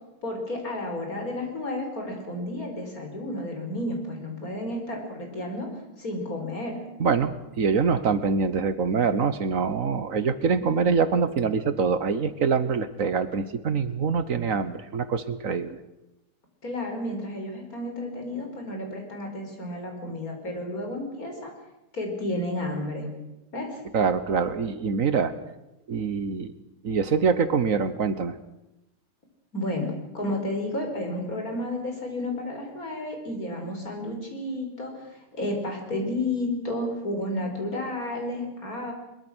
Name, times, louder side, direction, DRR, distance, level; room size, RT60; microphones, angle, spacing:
voice 1, 0.2-5.7 6.0-6.8 16.6-21.5 21.9-23.1 23.5-23.8 29.5-38.9, left 1 dB, 65° left, 2 dB, 5.2 m, -32 dB
voice 2, 7.0-15.8 23.9-25.3 25.9-26.5 26.8-28.4, right 5 dB, 60° right, 12 dB, 1.4 m, -24 dB
22.0 x 22.0 x 6.3 m, 0.92 s
omnidirectional pair, 1.6 m